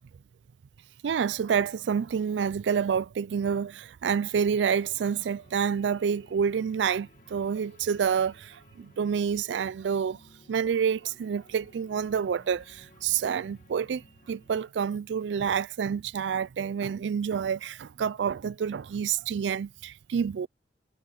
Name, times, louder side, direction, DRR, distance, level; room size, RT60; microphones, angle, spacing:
voice 1, 1.0-10.2 10.5-20.5, right 7 dB, 85° right, 0.4 m, -28 dB
sound 1, 4.1-14.7, left 1 dB, 50° left, 2.2 m, -59 dB
head